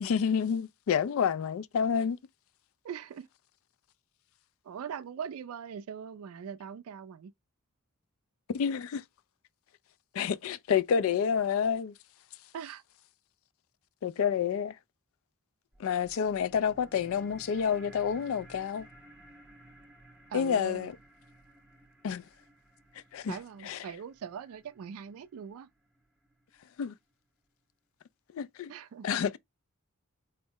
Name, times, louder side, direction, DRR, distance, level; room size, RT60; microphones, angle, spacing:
voice 1, 0.0-2.2 8.5-9.0 10.1-11.9 14.0-14.8 15.8-18.9 20.3-20.9 22.0-22.2 23.1-23.4 23.7-23.8 26.8-26.9 28.3-28.7 29.0-29.4, left 7 dB, 70° left, 0.3 m, -29 dB
voice 2, 2.8-3.3 4.6-7.3 12.5-12.8 20.3-20.9 23.3-25.7 28.7-29.1, right 7 dB, 75° right, 0.3 m, -41 dB
sound 1, 15.7-26.7, right 1 dB, 5° right, 0.6 m, -56 dB
4.2 x 2.0 x 3.5 m
head